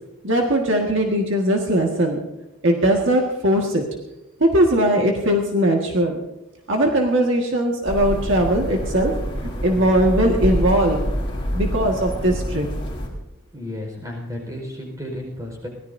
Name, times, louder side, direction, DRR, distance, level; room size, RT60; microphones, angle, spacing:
voice 1, 0.2-2.2 2.6-3.8 4.4-6.2 6.7-9.1 9.6-11.0 11.5-12.7, right 1 dB, 55° right, 0 dB, 1.8 m, -19 dB
sound 1, 7.9-13.1, equal, 25° left, 4.0 m, -26 dB
voice 2, 13.5-15.7, left 1 dB, 15° right, 0 dB, 4.8 m, -33 dB
23.5 x 18.0 x 2.7 m, 0.96 s
head